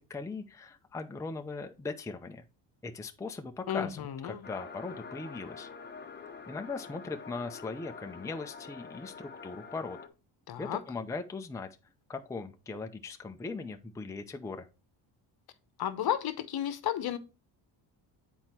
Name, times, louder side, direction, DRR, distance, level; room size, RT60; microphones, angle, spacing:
voice 1, 0.0-2.4 2.8-5.7 6.5-10.0 10.6-11.7 12.1-14.7, left 3 dB, 5° left, 0.6 m, -39 dB
voice 2, 3.7-4.5 10.5-10.8 15.8-17.2, left 10 dB, 55° left, 1.0 m, -33 dB
sound 1, 4.4-10.1, left 5 dB, 20° left, 1.1 m, -46 dB
7.9 x 4.5 x 4.3 m
cardioid pair, 115°, 45 cm